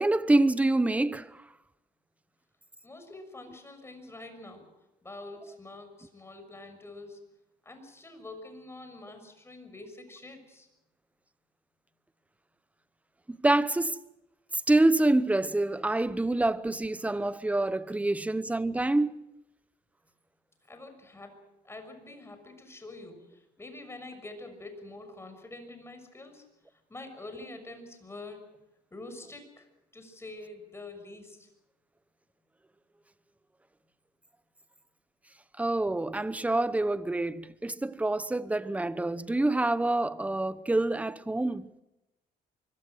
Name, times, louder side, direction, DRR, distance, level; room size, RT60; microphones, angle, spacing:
voice 1, 0.0-1.4 13.3-14.0 14.5-19.2 35.6-41.7, right 2 dB, 10° right, 0.9 m, -26 dB
voice 2, 2.8-4.7 5.0-7.2 7.6-10.7 20.7-21.4 21.6-26.4 26.7-28.4 28.9-29.7 29.9-31.5, left 2 dB, 15° left, 6.3 m, -46 dB
24.5 x 23.0 x 6.4 m
cardioid pair, 110°, 17 cm